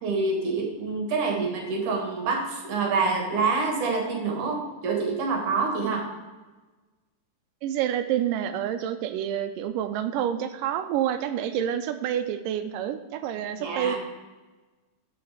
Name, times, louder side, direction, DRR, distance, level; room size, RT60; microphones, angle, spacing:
voice 1, 0.0-6.0 13.6-14.0, right 4 dB, 65° right, 2 dB, 2.9 m, -26 dB
voice 2, 7.6-14.0, right 10 dB, 80° right, 9 dB, 2.2 m, -28 dB
13.5 x 5.7 x 4.8 m, 1.2 s
omnidirectional pair, 3.9 m